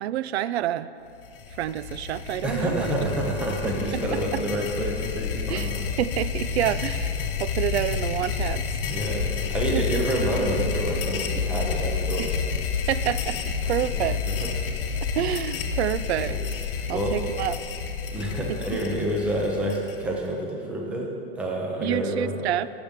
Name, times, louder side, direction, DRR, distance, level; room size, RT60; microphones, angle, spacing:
voice 1, 0.0-0.9 1.6-3.1 3.6-4.4 5.5-5.7 6.0-8.7 9.7-9.8 12.2-12.3 12.9-13.4 13.6-14.2 15.2-16.4 16.9-17.5 18.7-18.8 21.8-22.7, right 12 dB, 90° right, 15 dB, 0.5 m, -28 dB
sound 1, 1.2-20.3, left 6 dB, 60° left, 0.9 m, -29 dB
voice 2, 2.4-5.8 8.9-12.4 13.6-14.5 16.2-16.4 16.9-17.2 18.1-21.1 21.3-22.5, right 1 dB, 5° right, -1 dB, 0.5 m, -28 dB
15.5 x 7.0 x 3.6 m, 2.6 s
supercardioid pair, 170°, 32 cm